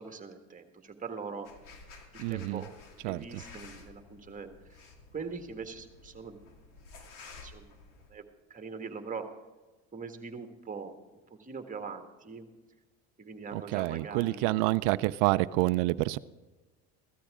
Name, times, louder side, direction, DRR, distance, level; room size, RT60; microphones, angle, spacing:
voice 1, 0.0-1.5 2.1-2.7 3.0-4.8 5.1-6.4 7.4-7.7 8.1-9.3 9.9-10.9 11.3-12.5 13.2-15.0, right 5 dB, 25° right, 1.7 m, -42 dB
sound 1, 1.4-8.1, left 4 dB, 70° left, 2.4 m, -52 dB
voice 2, 2.2-2.6 3.0-3.4 13.5-16.2, right 19 dB, 80° right, 0.5 m, -28 dB
15.5 x 13.5 x 3.6 m
supercardioid pair, 100°, 34 cm